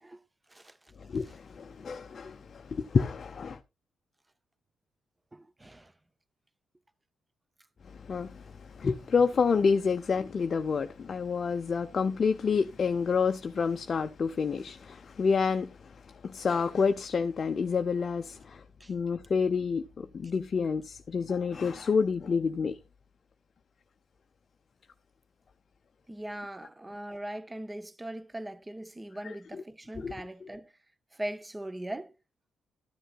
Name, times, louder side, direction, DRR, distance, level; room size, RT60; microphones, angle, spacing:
voice 1, 1.1-3.6 8.0-8.4 8.7-15.7 16.2-18.6 18.9-22.8 29.2-29.6 30.0-30.1 30.4-30.5, left 5 dB, 50° left, 0.5 m, -28 dB
voice 2, 5.3-5.9 18.8-18.9 26.1-30.7 31.2-32.1, right 1 dB, 20° right, 0.7 m, -40 dB
12.0 x 10.0 x 2.2 m
hypercardioid pair, 45°, 0 cm